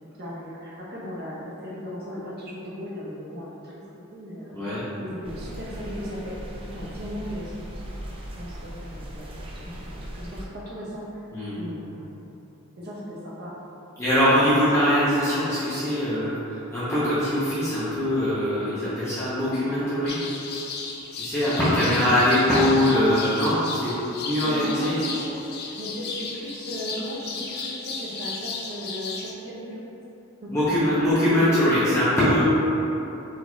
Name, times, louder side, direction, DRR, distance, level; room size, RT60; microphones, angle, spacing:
voice 1, 0.1-3.7 4.1-4.6 5.0-7.9 8.4-11.2 11.5-12.2 12.8-13.5 21.8-22.2 24.4-29.8 30.4-31.2 31.4-31.6, equal, 50° right, -6 dB, 0.8 m, -37 dB
sound 1, 5.2-10.4, equal, 25° right, 0.4 m, -38 dB
voice 2, 14.0-20.1 21.1-23.9 24.2-24.9 30.5-32.4, left 1 dB, 15° left, -12 dB, 0.7 m, -22 dB
sound 2, 20.1-29.3, left 4 dB, 50° left, 0.4 m, -35 dB
4.5 x 4.0 x 2.3 m, 3.0 s
head